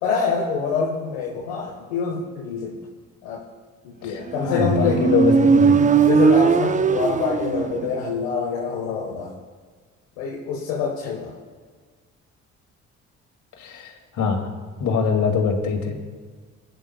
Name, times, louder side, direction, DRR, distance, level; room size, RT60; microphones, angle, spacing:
voice 1, 0.0-2.8 3.2-3.4 3.8-5.0 6.1-9.3 10.2-11.3, left 5 dB, 85° left, -2 dB, 1.3 m, -25 dB
voice 2, 4.0-5.8 13.6-14.5 14.8-16.0, left 5 dB, 65° left, 2 dB, 2.3 m, -23 dB
Motorcycle, 4.3-8.0, right 5 dB, 25° right, 0.5 m, -18 dB
20.0 x 9.9 x 2.3 m, 1.5 s
hypercardioid pair, 55°, 33 cm